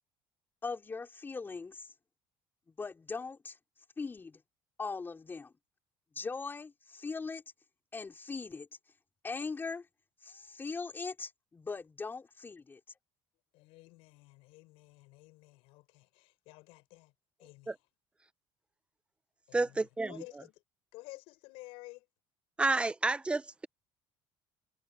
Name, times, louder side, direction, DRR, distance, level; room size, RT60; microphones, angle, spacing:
voice 1, 0.6-1.8 2.8-3.5 4.0-4.4 4.8-5.5 6.2-7.4 7.9-8.7 9.2-9.8 10.2-12.8, left 4 dB, 20° left, 4.2 m, -40 dB
voice 2, 13.5-17.1 17.4-17.7 19.5-19.8 20.1-20.5 20.9-22.0, left 22 dB, 80° left, 6.2 m, -52 dB
voice 3, 19.5-20.4 22.6-23.7, right 3 dB, 10° right, 0.9 m, -30 dB
cardioid pair, 115°, 9 cm